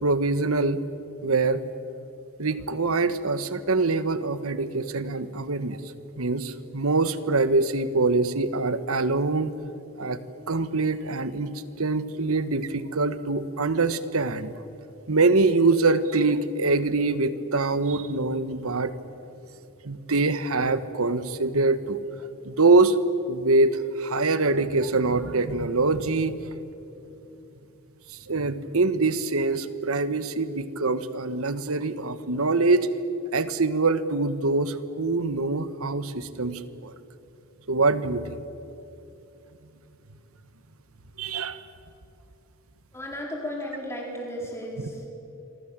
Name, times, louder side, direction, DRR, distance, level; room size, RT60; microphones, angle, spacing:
voice 1, 0.0-0.8 1.2-1.6 2.4-9.5 10.0-10.2 10.5-14.5 15.1-18.9 19.8-22.0 22.4-23.0 23.3-26.4 28.3-32.9 33.3-36.9 37.7-38.4 41.2-41.6 44.8-44.9, right 3 dB, 75° right, 13 dB, 1.2 m, -24 dB
voice 2, 42.9-45.1, equal, 10° left, -2 dB, 4.6 m, -34 dB
27.5 x 24.0 x 7.5 m, 2.8 s
head